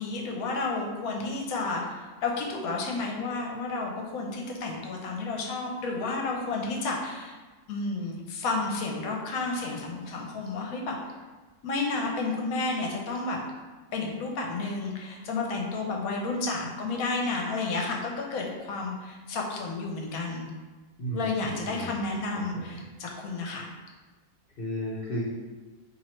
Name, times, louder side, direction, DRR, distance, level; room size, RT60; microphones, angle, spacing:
voice 1, 0.0-7.4 7.7-10.9 11.6-13.4 13.9-20.5 21.1-23.7, left 3 dB, 75° left, 0 dB, 1.0 m, -31 dB
voice 2, 21.0-22.0 22.5-22.8 24.6-25.2, right 1 dB, 50° left, -5 dB, 0.7 m, -34 dB
3.0 x 2.7 x 4.3 m, 1.3 s
omnidirectional pair, 1.6 m